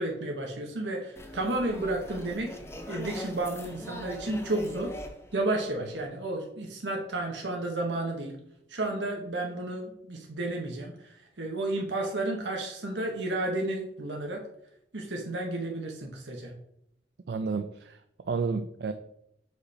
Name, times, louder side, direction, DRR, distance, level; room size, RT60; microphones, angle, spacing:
voice 1, 0.0-2.6 2.9-4.9 5.3-8.4 8.7-14.4 14.9-16.5, right 2 dB, 85° right, 1 dB, 1.0 m, -32 dB
sound 1, 1.2-6.3, left 1 dB, 15° left, 0.6 m, -42 dB
voice 2, 17.3-18.9, right 4 dB, 65° right, 9 dB, 0.4 m, -31 dB
5.0 x 4.8 x 4.1 m, 0.76 s
head